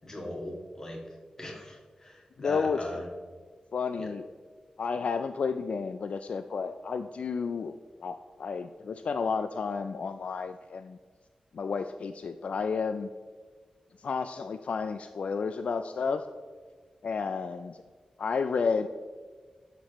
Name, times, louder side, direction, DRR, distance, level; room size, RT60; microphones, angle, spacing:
voice 1, 0.0-1.0 1.4-3.0 4.0-4.1, left 1 dB, 25° left, -1 dB, 1.8 m, -39 dB
voice 2, 2.4-2.8 3.7-4.3 4.8-11.0 11.5-13.1 14.0-16.2 17.0-17.8 18.2-18.9, left 5 dB, 65° left, 9 dB, 0.3 m, -31 dB
11.5 x 6.7 x 3.0 m, 1.5 s
wide cardioid pair, 135°, 2 cm